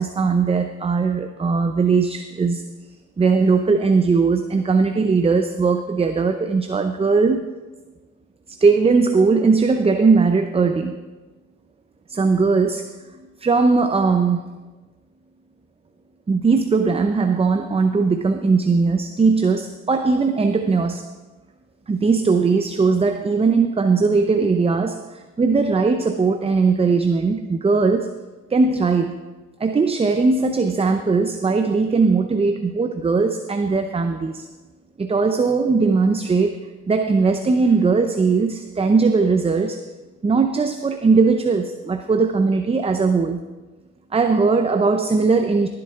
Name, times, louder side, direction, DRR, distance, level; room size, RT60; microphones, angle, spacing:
voice 1, 0.0-2.6 3.2-7.5 8.6-11.0 12.1-14.4 16.3-21.1 21.9-28.2 28.5-29.2 29.6-34.5 35.0-36.6 36.9-39.8 40.2-43.4 44.1-45.7, right 4 dB, 20° right, 7 dB, 0.6 m, -19 dB
17.5 x 7.8 x 3.6 m, 1.2 s
cardioid pair, 90°, 30 cm